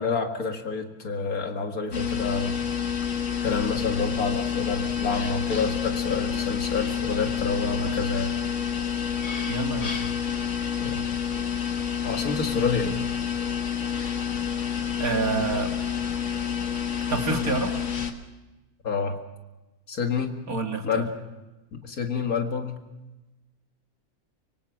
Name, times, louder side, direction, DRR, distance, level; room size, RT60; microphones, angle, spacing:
voice 1, 0.0-2.6 3.4-8.3 10.8-11.0 12.0-13.0 18.8-19.2 19.9-20.4 20.8-21.1 21.7-22.8, left 5 dB, 75° left, 5 dB, 2.3 m, -28 dB
sound 1, 1.9-18.1, left 8 dB, 55° left, 1.9 m, -28 dB
voice 2, 9.5-10.0 15.0-15.7 17.1-17.8 20.5-21.1, right 4 dB, 70° right, 3 dB, 2.9 m, -27 dB
25.0 x 24.0 x 6.2 m, 1.1 s
omnidirectional pair, 1.5 m